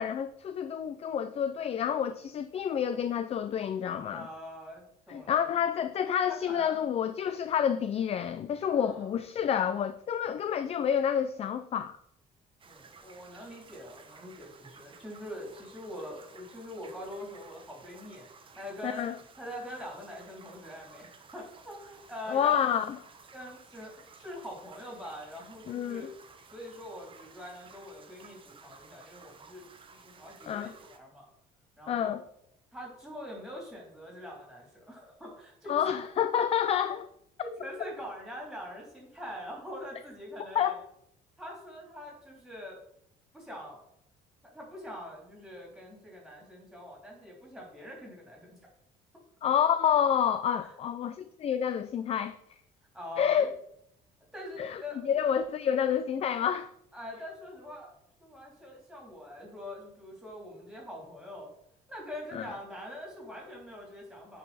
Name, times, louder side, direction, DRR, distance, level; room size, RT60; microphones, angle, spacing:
voice 1, 0.0-4.3 5.1-12.0 18.8-19.1 22.3-23.0 25.7-26.1 30.5-30.7 31.9-32.2 35.7-37.1 40.5-40.7 49.4-52.6 53.2-53.5 54.6-56.7 62.3-62.5, left 8 dB, 35° left, 0.4 m, -29 dB
voice 2, 4.1-5.4 6.5-6.8 8.7-9.1 12.7-18.3 18.5-19.1 19.4-22.7 23.3-26.1 26.5-29.6 29.9-31.3 31.8-32.2 32.7-36.0 37.4-40.8 41.4-42.8 43.3-43.8 44.4-48.6 50.6-50.7 52.9-53.5 54.3-55.0 56.9-57.9 58.2-61.5 61.9-64.4, left 1 dB, ahead, 3.3 m, -44 dB
sound 1, 12.6-31.0, right 5 dB, 30° right, 0.9 m, -55 dB
9.1 x 4.6 x 4.2 m
cardioid pair, 110°, 17 cm